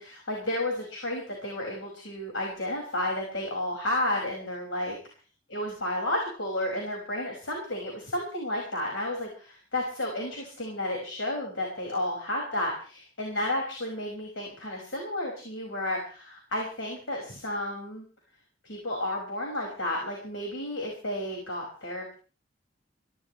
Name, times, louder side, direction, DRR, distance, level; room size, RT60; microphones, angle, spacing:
voice 1, 0.0-5.0 5.5-18.0 18.6-22.1, left 1 dB, 85° left, 0 dB, 5.8 m, -32 dB
24.5 x 16.5 x 3.3 m, 0.38 s
head